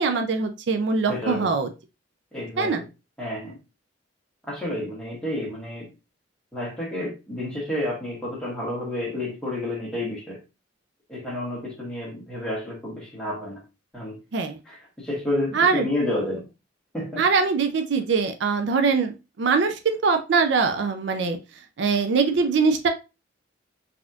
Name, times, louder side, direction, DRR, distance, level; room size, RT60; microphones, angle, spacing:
voice 1, 0.0-1.7 2.6-2.8 14.3-14.6 15.5-15.9 17.2-21.4 21.8-22.9, right 5 dB, 60° right, 7 dB, 0.4 m, -22 dB
voice 2, 1.0-1.5 2.3-2.8 3.2-3.6 4.5-5.8 6.5-10.4 11.1-13.6 13.9-14.2 14.7-16.5 16.9-17.2, left 1 dB, 5° left, -4 dB, 1.4 m, -30 dB
4.0 x 2.9 x 2.4 m, 0.28 s
head